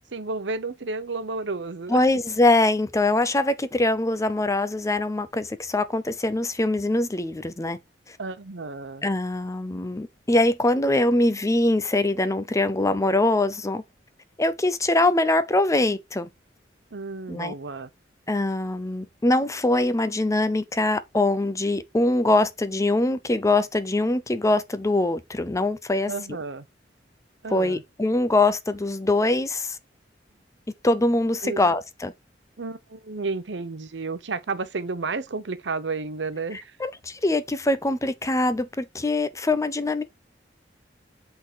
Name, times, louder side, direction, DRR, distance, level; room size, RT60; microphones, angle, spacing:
voice 1, 0.1-2.0 8.2-9.0 16.9-17.9 26.1-26.6 27.4-27.8 31.4-31.8 32.6-36.8, right 3 dB, 75° right, 0.8 m, -32 dB
voice 2, 1.9-7.8 8.1-8.2 9.0-13.8 14.4-16.3 17.3-17.5 18.3-26.1 27.5-29.8 30.8-32.1 36.8-40.0, left 2 dB, 15° left, 0.6 m, -23 dB
7.8 x 3.9 x 4.5 m
head